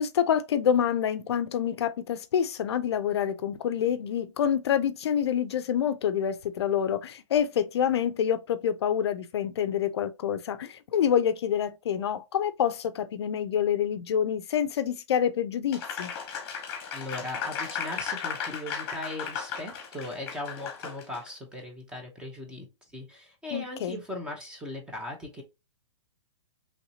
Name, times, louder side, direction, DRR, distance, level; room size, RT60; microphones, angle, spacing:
voice 1, 0.0-16.1 23.5-24.0, left 9 dB, 60° left, 0.4 m, -27 dB
Applause, 15.7-21.3, left 7 dB, 30° left, 1.0 m, -35 dB
voice 2, 16.9-25.4, left 1 dB, 5° right, 0.6 m, -38 dB
3.1 x 2.8 x 2.7 m
hypercardioid pair, 160°, 15 cm